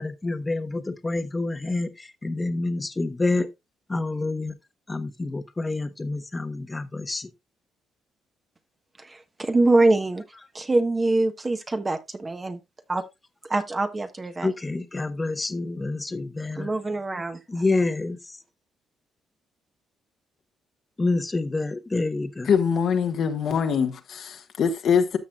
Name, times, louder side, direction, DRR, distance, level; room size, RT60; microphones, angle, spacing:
voice 1, 0.0-3.5 3.9-4.6 4.9-7.3 14.4-16.7 17.5-18.4 21.0-22.5, left 2 dB, 20° left, 1.1 m, -28 dB
voice 2, 9.0-10.2 10.5-12.6 12.9-13.0 13.5-14.5 16.6-17.4, right 2 dB, 25° right, 1.3 m, -24 dB
voice 3, 22.5-25.2, left 6 dB, 65° left, 1.4 m, -23 dB
13.5 x 6.2 x 2.4 m
cardioid pair, 90°, 0 cm